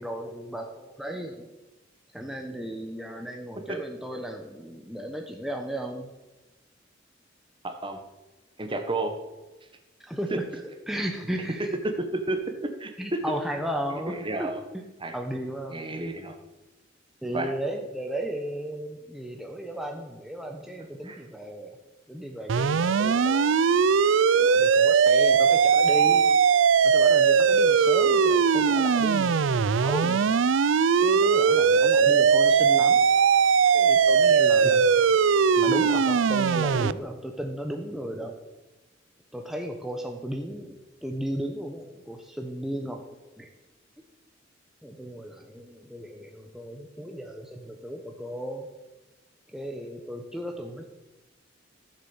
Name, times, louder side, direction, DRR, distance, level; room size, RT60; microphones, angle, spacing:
voice 1, 0.0-1.5 2.1-6.1 10.0-11.6 13.0-14.8 15.1-15.8 17.2-21.8 22.1-23.5 23.9-24.0 24.3-26.3 26.8-30.2 31.0-33.0 33.7-34.9 35.6-38.4 39.3-40.8 41.0-43.0 43.4-43.5 44.8-48.7 49.5-50.9, right 1 dB, ahead, 2 dB, 1.0 m, -35 dB
voice 2, 7.6-8.0 8.6-9.1 10.3-10.4 11.8-12.4 12.8-13.2 13.9-14.6 15.0-15.2 15.7-16.3 17.3-17.5 21.0-21.2, right 2 dB, 25° right, 6 dB, 1.4 m, -31 dB
sound 1, 22.5-36.9, right 6 dB, 75° right, 0.5 m, -20 dB
14.5 x 7.4 x 7.2 m, 1.1 s
head